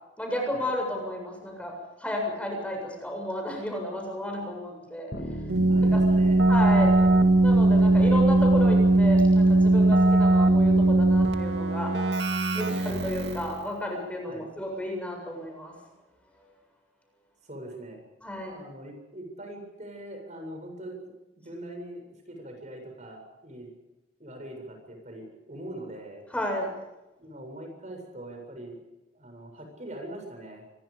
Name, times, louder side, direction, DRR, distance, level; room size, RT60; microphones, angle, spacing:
voice 1, 0.2-5.1 5.9-6.0 6.5-6.9 7.4-11.9 12.5-15.7 18.2-18.6 26.3-26.7, equal, 5° left, 1 dB, 7.4 m, -32 dB
sound 1, 5.1-11.4, equal, 55° left, 7.6 m, -38 dB
Keyboard (musical), 5.5-13.6, right 2 dB, 65° right, 2.4 m, -20 dB
voice 2, 5.6-6.4 6.8-7.1 12.7-12.9 14.3-14.5 17.4-18.0 18.5-21.1 21.4-23.7 24.2-26.2 27.2-28.8 29.1-30.6, right 1 dB, 40° right, 3 dB, 7.6 m, -42 dB
27.0 x 23.0 x 5.3 m, 0.99 s
head